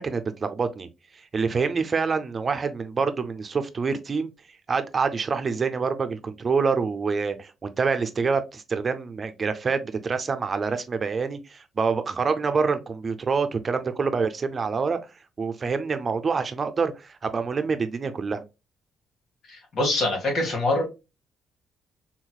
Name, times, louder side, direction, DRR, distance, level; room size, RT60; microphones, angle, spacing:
voice 1, 0.0-4.3 4.7-15.0 15.4-18.4, right 5 dB, 40° right, 0.5 m, -26 dB
voice 2, 19.5-20.8, left 2 dB, 60° left, 1.9 m, -24 dB
3.8 x 3.0 x 2.3 m
cardioid pair, 90°, 0 cm